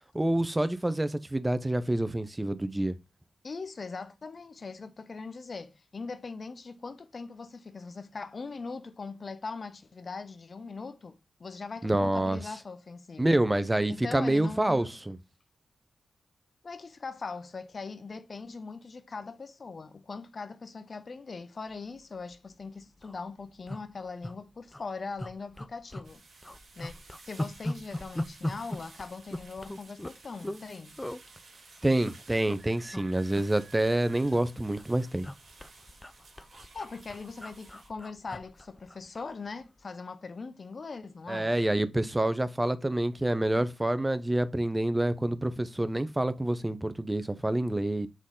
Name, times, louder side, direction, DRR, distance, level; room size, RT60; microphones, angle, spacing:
voice 1, 0.1-3.0 11.8-12.4 13.2-15.2 31.8-35.3 41.3-48.1, right 1 dB, 15° right, 0.7 m, -27 dB
voice 2, 3.4-13.4 13.9-14.9 16.6-26.2 26.8-27.0 27.2-31.0 36.7-41.6, left 4 dB, 55° left, 0.7 m, -41 dB
sound 1, 22.2-22.4 22.7-22.8 22.9-23.2 23.7-24.3 24.7-24.8 25.2-26.1 26.4-30.6 31.0-31.2 31.8-32.6 32.9-33.1 33.3-34.5 34.8-39.3 39.6-39.8, left 1 dB, 15° left, 0.5 m, -39 dB
sound 2, 26.0-37.9, right 3 dB, 70° right, 2.1 m, -54 dB
6.2 x 3.9 x 3.8 m
cardioid pair, 50°, 0 cm